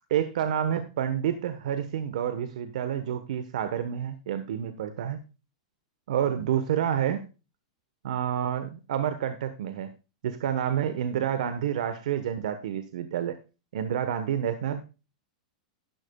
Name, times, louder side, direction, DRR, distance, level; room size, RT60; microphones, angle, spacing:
voice 1, 0.1-5.2 6.1-7.2 8.0-9.9 10.2-13.4 13.7-14.8, right 9 dB, 75° right, 10 dB, 1.2 m, -29 dB
12.0 x 10.5 x 2.3 m, 0.31 s
hypercardioid pair, 140°, 4 cm